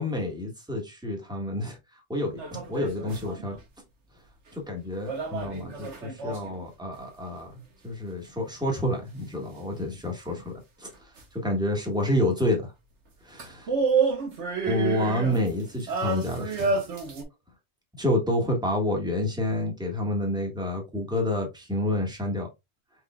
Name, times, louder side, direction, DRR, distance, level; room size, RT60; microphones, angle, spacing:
voice 1, 0.0-1.8 2.1-3.6 4.5-10.9 11.3-12.7 13.2-13.7 14.6-16.8 18.0-22.5, left 1 dB, 5° right, 1.4 m, -29 dB
sound 1, 2.3-3.6 5.1-6.7 11.2-11.3 13.4-17.2, right 4 dB, 85° right, 1.6 m, -29 dB
4.9 x 4.8 x 2.3 m
omnidirectional pair, 1.2 m